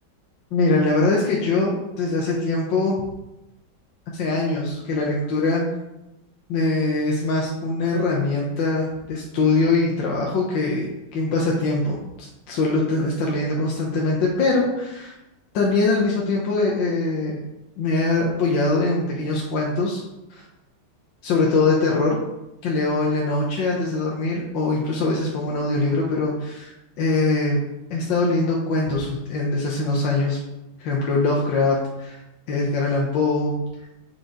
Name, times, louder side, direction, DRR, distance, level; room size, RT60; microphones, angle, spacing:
voice 1, 0.5-3.0 4.1-5.6 6.5-15.1 15.5-17.4 17.8-20.0 20.3-20.4 21.2-22.2 22.6-27.6 27.9-30.4 30.8-32.2 32.5-33.6, left 3 dB, 85° left, -2 dB, 1.7 m, -22 dB
6.9 x 5.8 x 3.8 m, 0.93 s
omnidirectional pair, 2.0 m